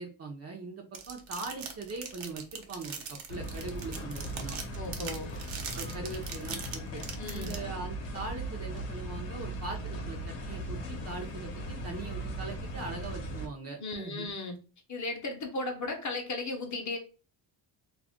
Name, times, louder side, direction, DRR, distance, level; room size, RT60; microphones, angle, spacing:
voice 1, 0.0-3.0 3.3-4.6 5.7-7.0 7.3-14.3, right 3 dB, 30° right, 1 dB, 0.5 m, -41 dB
sound 1, 0.9-7.5, right 7 dB, 65° right, 0.8 m, -40 dB
sound 2, 3.3-13.5, right 1 dB, 60° left, 0.9 m, -38 dB
voice 2, 4.8-5.3 7.2-7.5 13.8-14.6 14.9-17.0, left 2 dB, 35° left, 3 dB, 0.7 m, -35 dB
2.4 x 2.1 x 3.4 m, 0.36 s
cardioid pair, 135°, 49 cm